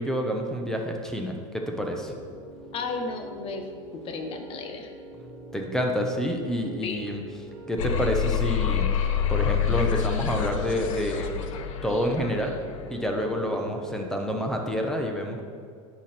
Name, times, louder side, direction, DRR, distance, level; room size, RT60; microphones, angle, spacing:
voice 1, 0.0-2.1 5.5-7.2 7.7-8.9 9.3-11.3 11.8-12.6 12.9-15.4, equal, 5° left, 2 dB, 0.9 m, -28 dB
Piano, 1.8-14.7, right 2 dB, 35° right, 1.8 m, -44 dB
voice 2, 2.7-4.9 6.6-7.0, left 4 dB, 35° left, 5 dB, 1.1 m, -34 dB
sound 1, 7.8-12.9, left 8 dB, 75° left, 0.8 m, -27 dB
9.6 x 6.1 x 4.4 m, 2.3 s
supercardioid pair, 130°, 17 cm